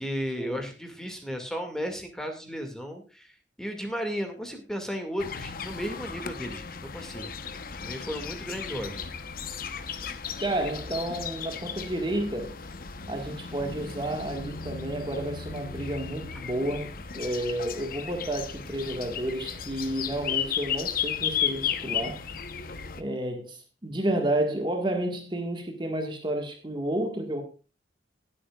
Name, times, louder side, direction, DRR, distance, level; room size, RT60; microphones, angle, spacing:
voice 1, 0.0-7.5 7.8-9.0 16.3-16.4, equal, 5° left, 2.1 m, -35 dB
sound 1, 5.2-23.0, left 7 dB, 55° left, 1.0 m, -35 dB
voice 2, 10.4-12.5 13.1-16.9 17.2-22.2 23.0-27.4, right 1 dB, 25° right, 1.7 m, -31 dB
19.5 x 8.7 x 2.4 m
head